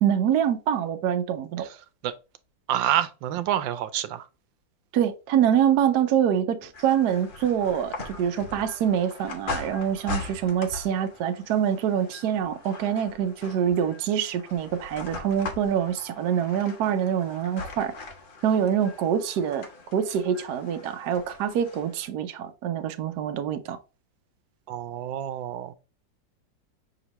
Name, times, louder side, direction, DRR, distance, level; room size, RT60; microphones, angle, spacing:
voice 1, 0.0-1.7 4.9-17.9 18.4-19.6 19.9-23.8, right 9 dB, 70° right, 1.1 m, -25 dB
voice 2, 2.7-4.3 24.7-25.7, right 11 dB, 90° right, 1.4 m, -28 dB
sound 1, 6.7-22.1, left 3 dB, 70° left, 0.4 m, -40 dB
6.2 x 2.9 x 2.9 m
omnidirectional pair, 2.0 m